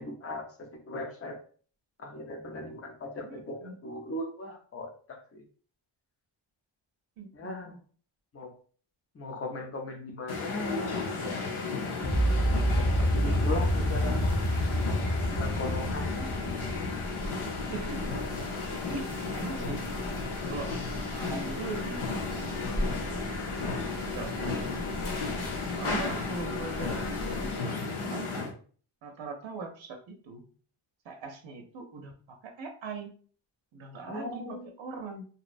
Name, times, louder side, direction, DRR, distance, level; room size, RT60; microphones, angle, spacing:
voice 1, 0.0-1.4 2.0-5.4 7.3-7.8 8.3-8.5 9.1-11.4 12.7-14.4 15.2-16.1 18.6-18.7 25.6-26.0 34.1-34.7, left 1 dB, 30° left, 3 dB, 0.6 m, -38 dB
voice 2, 3.2-3.8 7.2-7.8 15.8-16.3 17.7-18.1 18.7-19.1 19.3-19.8 20.4-20.8 21.1-23.0 23.7-25.0 25.7-28.4 29.0-30.4 31.0-33.1 33.7-35.2, right 3 dB, 65° right, 4 dB, 0.6 m, -41 dB
sound 1, 10.3-28.5, left 4 dB, 85° left, 0.7 m, -34 dB
sound 2, 12.0-18.1, equal, 55° left, 0.8 m, -28 dB
sound 3, 12.1-27.6, equal, 10° right, 0.7 m, -41 dB
2.7 x 2.0 x 2.5 m, 0.42 s
wide cardioid pair, 110°, 50 cm